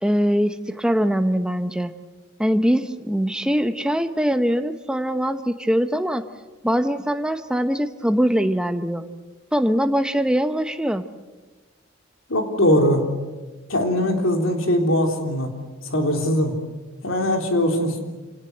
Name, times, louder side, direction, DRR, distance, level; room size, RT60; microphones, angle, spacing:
voice 1, 0.0-1.9 2.4-6.2 6.6-9.1 9.5-11.0, equal, 5° right, 8 dB, 1.0 m, -22 dB
voice 2, 12.3-13.1 13.7-15.5 15.8-16.6 17.0-18.0, left 1 dB, 85° left, 3 dB, 3.7 m, -21 dB
27.5 x 18.5 x 8.1 m, 1.2 s
head